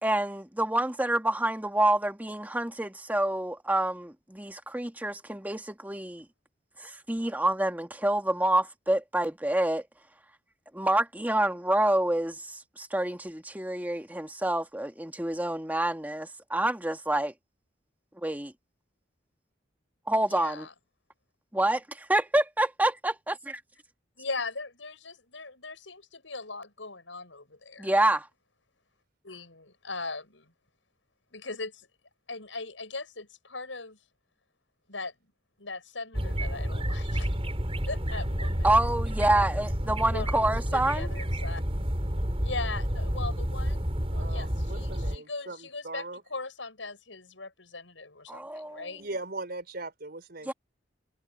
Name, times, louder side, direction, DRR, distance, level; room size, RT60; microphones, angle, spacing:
voice 1, 0.0-6.2 6.8-9.8 10.7-17.3 18.2-18.5 20.1-20.7 21.5-23.6 27.8-28.3 38.6-41.1 48.3-48.9 50.4-50.5, right 1 dB, 10° right, 1.8 m, -27 dB
voice 2, 20.3-20.7 24.2-27.9 29.2-30.4 31.3-31.7 32.3-34.0 34.9-35.1 35.6-37.3 37.9-38.7 40.1-41.6 42.4-43.8 44.1-46.0 46.3-48.4 48.7-49.0, left 3 dB, 90° left, 7.3 m, -39 dB
sound 1, 36.1-45.2, equal, 30° right, 4.7 m, -30 dB
voice 3, 44.1-46.2 49.0-50.5, right 2 dB, 60° right, 4.5 m, -39 dB
head